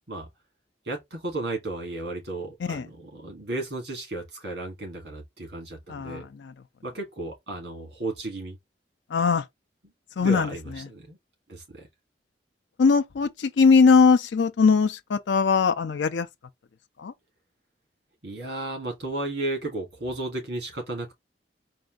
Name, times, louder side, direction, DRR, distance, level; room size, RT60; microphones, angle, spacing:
voice 1, 0.9-6.3 6.8-8.6 10.2-11.2 11.5-11.9 18.2-21.1, right 2 dB, 65° right, 2.4 m, -34 dB
voice 2, 5.9-6.5 9.1-9.4 10.2-10.5 12.8-16.3 17.0-17.1, left 5 dB, 85° left, 0.4 m, -20 dB
4.2 x 2.6 x 3.7 m
head